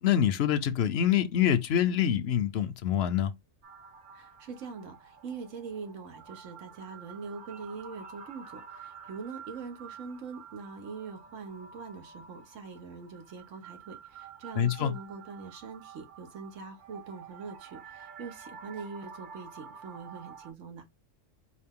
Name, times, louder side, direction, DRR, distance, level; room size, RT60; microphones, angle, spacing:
voice 1, 0.0-3.3 14.6-14.9, left 9 dB, 65° left, 0.7 m, -25 dB
sound 1, 3.6-20.5, right 7 dB, 45° right, 0.7 m, -49 dB
voice 2, 4.1-20.8, right 5 dB, 75° right, 1.4 m, -43 dB
4.6 x 2.5 x 3.6 m
omnidirectional pair, 1.3 m